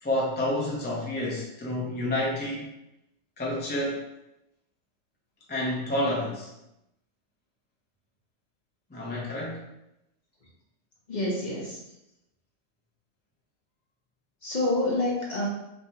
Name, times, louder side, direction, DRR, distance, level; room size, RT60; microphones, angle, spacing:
voice 1, 0.0-2.6 3.4-4.0 5.5-6.5 8.9-9.6, left 1 dB, 10° left, -4 dB, 0.5 m, -29 dB
voice 2, 11.1-11.8 14.4-15.5, left 1 dB, 40° left, -4 dB, 0.8 m, -27 dB
3.3 x 3.2 x 2.8 m, 0.88 s
omnidirectional pair, 1.3 m